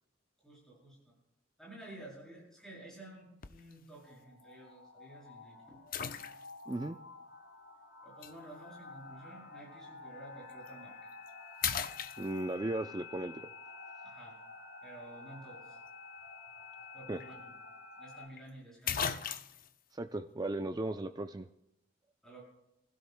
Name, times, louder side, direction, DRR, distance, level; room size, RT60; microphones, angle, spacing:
voice 1, 0.4-1.1 1.6-5.8 8.0-11.1 14.0-14.4 14.8-15.8 16.9-17.3 18.0-19.2 22.2-22.4, right 1 dB, 5° left, -5 dB, 7.5 m, -52 dB
sound 1, 3.4-3.7 4.4-4.5 5.9-6.7 8.2-8.3 10.5-10.7 11.1-11.3 11.6-12.7 16.8-16.9 17.2-17.3 18.4-18.5 18.9-19.7, left 8 dB, 45° left, 0.6 m, -36 dB
sound 2, 4.0-18.3, left 4 dB, 80° left, 2.2 m, -50 dB
voice 2, 6.7-7.0 12.2-13.5 17.1-17.2 19.9-21.5, right 2 dB, 20° right, 8 dB, 0.4 m, -36 dB
28.0 x 16.0 x 2.2 m, 0.86 s
head